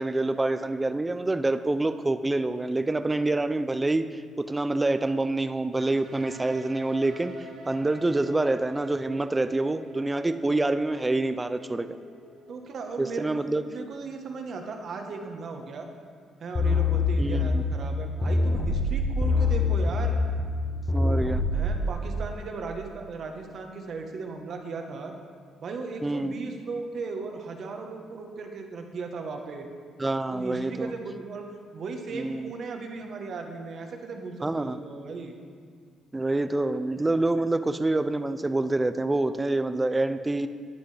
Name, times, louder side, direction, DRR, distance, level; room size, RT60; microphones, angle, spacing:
voice 1, 0.0-12.0 13.0-13.6 17.2-17.6 20.9-21.4 26.0-26.3 30.0-30.9 32.1-32.5 34.4-34.8 36.1-40.5, right 2 dB, 15° right, 11 dB, 0.4 m, -27 dB
sound 1, 5.8-13.5, right 1 dB, 80° right, 2.9 m, -47 dB
voice 2, 12.5-15.9 16.4-20.2 21.5-25.1 25.6-29.7 30.3-31.5 31.7-35.3, right 4 dB, 50° right, 4 dB, 1.2 m, -37 dB
sound 2, 16.6-21.9, left 3 dB, 25° left, 1.0 m, -25 dB
14.0 x 10.0 x 3.4 m, 2.1 s
cardioid pair, 135°, 0 cm